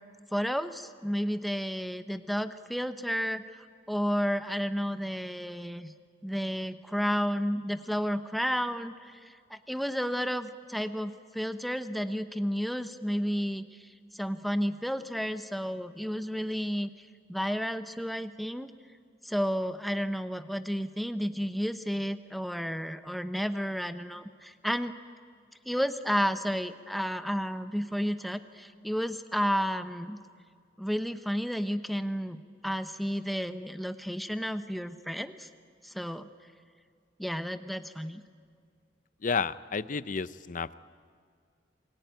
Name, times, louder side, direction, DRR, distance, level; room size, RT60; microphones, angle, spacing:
voice 1, 0.3-5.9 6.2-18.7 19.2-25.0 25.7-30.2 30.8-35.5 35.8-36.3 37.2-38.2, equal, ahead, 10 dB, 0.9 m, -32 dB
voice 2, 39.2-40.8, left 5 dB, 45° left, 16 dB, 0.6 m, -31 dB
28.5 x 22.0 x 9.1 m, 2.1 s
head